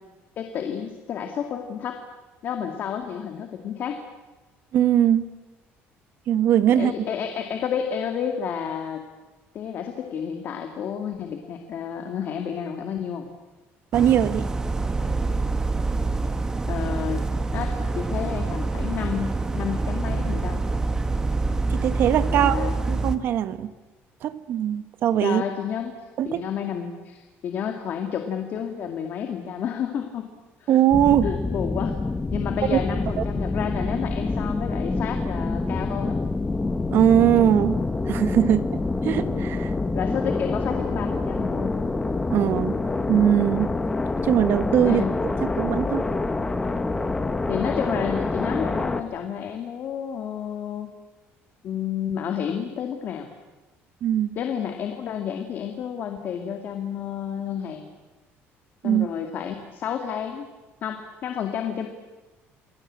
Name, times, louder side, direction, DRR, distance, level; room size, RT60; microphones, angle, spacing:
voice 1, 0.4-2.0 2.4-4.0 6.7-9.0 9.5-13.3 16.7-17.2 17.5-20.6 22.3-22.8 25.2-26.0 26.2-30.3 30.6-30.8 31.2-32.0 32.3-36.2 39.9-41.8 44.8-45.1 47.5-50.9 51.6-53.3 54.4-57.9 58.8-60.5 60.8-61.9, left 8 dB, 40° left, 5 dB, 2.3 m, -30 dB
voice 2, 4.7-5.3 6.3-6.9 13.9-14.5 21.7-23.7 24.2-25.4 26.2-26.4 30.7-31.3 32.7-32.8 36.9-37.8 38.1-39.7 42.3-42.8 43.1-43.7 44.2-45.0 45.4-46.1 54.0-54.4 58.8-59.1, right 10 dB, 50° right, 12 dB, 1.4 m, -21 dB
sound 1, 13.9-23.2, right 3 dB, 15° right, 1.3 m, -26 dB
sound 2, 30.9-49.0, left 3 dB, 10° left, 1.1 m, -26 dB
28.5 x 22.5 x 8.8 m, 1.2 s
cardioid pair, 175°, 5 cm